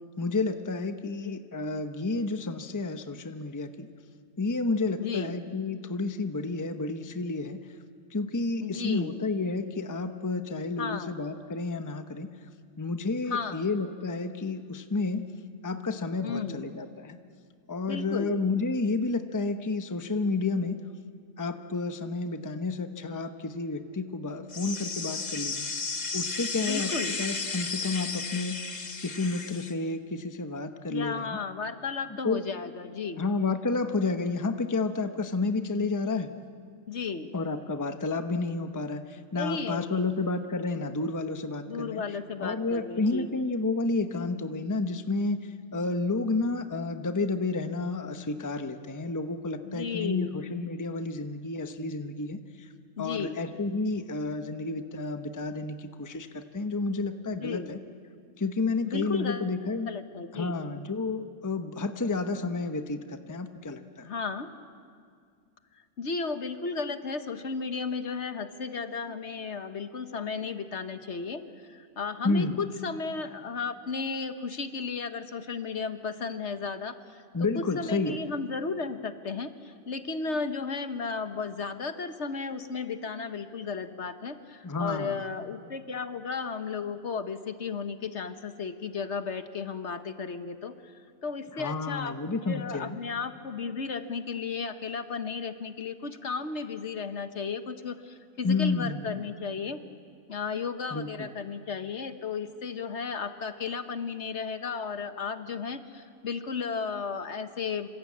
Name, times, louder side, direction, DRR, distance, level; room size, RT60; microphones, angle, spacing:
voice 1, 0.2-3.9 4.4-7.6 8.1-12.3 12.8-15.2 15.6-17.2 17.7-20.8 21.4-25.7 26.1-26.9 27.2-28.7 29.0-31.4 32.2-32.4 33.2-36.3 37.3-42.0 42.4-52.7 53.0-57.8 58.4-59.9 60.3-64.1 72.2-72.6 77.3-78.2 84.6-85.2 91.6-93.0 98.4-99.1 100.9-101.3, left 3 dB, 15° left, 7 dB, 0.9 m, -30 dB
voice 2, 5.0-5.3 8.6-9.2 10.8-11.2 13.3-13.7 16.2-16.6 17.8-18.3 26.6-27.2 30.9-33.2 36.9-37.3 39.4-40.1 41.7-43.3 49.6-50.4 53.0-53.4 57.4-57.7 58.9-59.5 59.9-60.5 64.0-64.5 65.7-99.8 100.3-107.9, left 5 dB, 60° left, 9 dB, 1.4 m, -34 dB
sound 1, 24.5-29.7, left 4 dB, 35° left, 1.2 m, -34 dB
27.0 x 26.0 x 8.6 m, 2.1 s
omnidirectional pair, 1.4 m